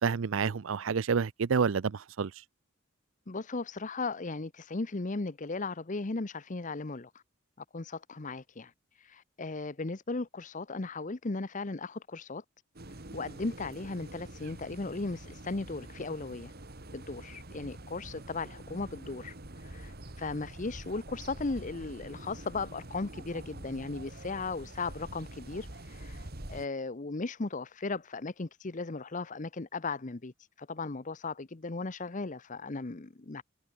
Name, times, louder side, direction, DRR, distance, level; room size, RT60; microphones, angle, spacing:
voice 1, 0.0-2.3, right 6 dB, 70° right, 0.5 m, -29 dB
voice 2, 3.3-7.1 7.7-12.4 13.1-16.5 16.9-33.4, left 3 dB, 35° left, 0.8 m, -37 dB
sound 1, 12.7-26.7, right 1 dB, 50° right, 2.6 m, -46 dB
head